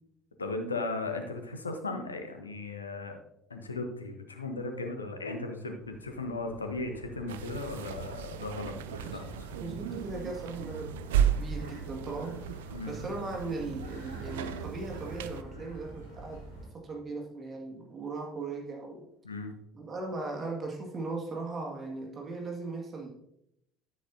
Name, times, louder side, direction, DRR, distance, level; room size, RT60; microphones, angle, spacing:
voice 1, 0.4-3.2 3.5-9.3 12.7-13.0 19.2-19.5, left 3 dB, 80° left, 6 dB, 1.0 m, -36 dB
sound 1, 5.8-16.7, right 2 dB, 85° right, 2.2 m, -47 dB
sound 2, 7.3-15.4, right 9 dB, 70° right, 0.4 m, -35 dB
voice 2, 9.6-10.9 11.4-12.6 12.8-16.4 16.7-19.1 19.7-23.1, right 3 dB, 30° right, 0 dB, 1.9 m, -38 dB
10.5 x 9.7 x 2.7 m, 0.78 s
figure-of-eight pair, 60°, 0 cm